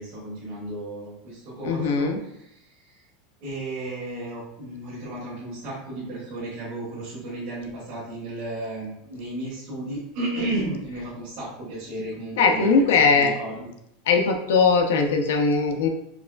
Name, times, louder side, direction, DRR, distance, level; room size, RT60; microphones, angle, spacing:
voice 1, 0.0-2.5 3.4-13.7, right 2 dB, 55° right, -10 dB, 1.4 m, -33 dB
voice 2, 1.6-2.2 12.4-13.3 14.1-15.9, left 4 dB, 85° left, 4 dB, 0.5 m, -20 dB
4.7 x 2.3 x 2.2 m, 0.80 s
supercardioid pair, 160°, 0 cm